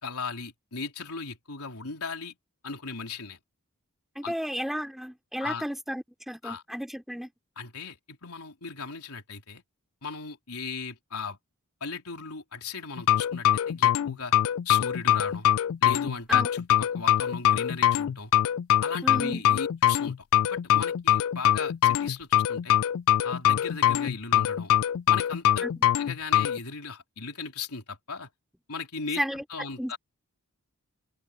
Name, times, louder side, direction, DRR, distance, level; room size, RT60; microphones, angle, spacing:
voice 1, 0.0-2.4 2.6-3.4 4.2-4.3 5.4-5.6 6.4-6.6 7.6-9.6 10.0-11.4 11.8-14.3 14.6-15.5 15.8-18.3 18.8-22.8 23.2-24.7 25.1-25.7 26.0-28.3 28.7-30.0, left 4 dB, 85° left, 3.8 m, -37 dB
voice 2, 4.1-7.3 16.3-16.5 19.0-19.4 25.6-25.9 29.2-29.4 29.8-29.9, equal, ahead, 2.9 m, -33 dB
sound 1, 13.0-26.6, left 11 dB, 65° left, 0.3 m, -23 dB
open air
head